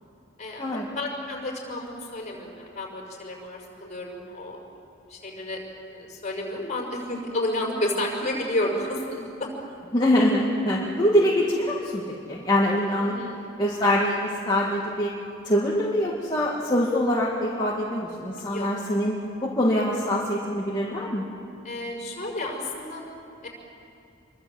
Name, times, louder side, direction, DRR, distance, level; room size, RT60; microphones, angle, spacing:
voice 1, 0.4-4.8 5.1-5.6 5.9-9.2 13.0-13.4 18.4-18.7 21.6-23.0 23.4-23.5, left 1 dB, 35° left, -1 dB, 5.5 m, -31 dB
voice 2, 9.9-13.2 13.6-15.1 15.4-21.2, left 1 dB, 20° left, -5 dB, 2.2 m, -24 dB
27.0 x 23.5 x 7.9 m, 2.7 s
head